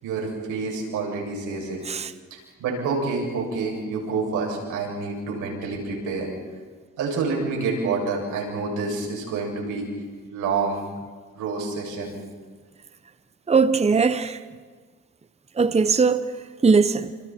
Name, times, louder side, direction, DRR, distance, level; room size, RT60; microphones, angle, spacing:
voice 1, 0.0-1.8 2.3-6.3 7.0-9.9 10.3-10.8 11.4-12.1, right 4 dB, 85° right, 7.4 m, -28 dB
voice 2, 13.5-14.4 15.6-16.2 16.6-17.1, right 5 dB, 20° right, 0.9 m, -19 dB
29.0 x 28.0 x 4.5 m
cardioid pair, 90°, 30 cm